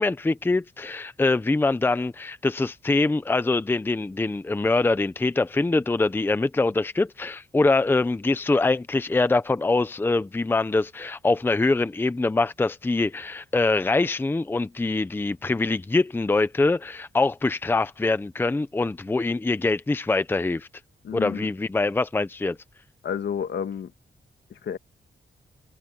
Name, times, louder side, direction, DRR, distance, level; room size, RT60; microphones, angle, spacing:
voice 1, 0.0-20.7 21.1-22.6, left 3 dB, 10° left, 0.6 m, -24 dB
voice 2, 21.0-21.5 23.0-23.9 24.5-24.8, left 8 dB, 75° left, 1.9 m, -30 dB
wide cardioid pair, 170°, 18 cm